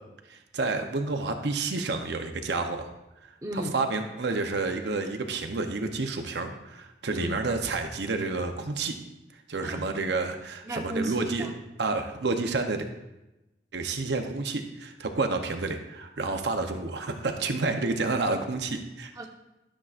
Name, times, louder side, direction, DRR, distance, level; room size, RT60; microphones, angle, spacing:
voice 1, 0.3-2.9 3.7-9.0 9.5-11.5 11.8-12.8 13.7-19.1, right 3 dB, 70° right, 5 dB, 0.7 m, -29 dB
voice 2, 3.4-3.7 7.1-7.4 9.6-9.9 10.6-11.5 19.2-19.3, right 1 dB, 20° right, 1 dB, 0.9 m, -34 dB
12.0 x 7.2 x 2.5 m, 0.98 s
head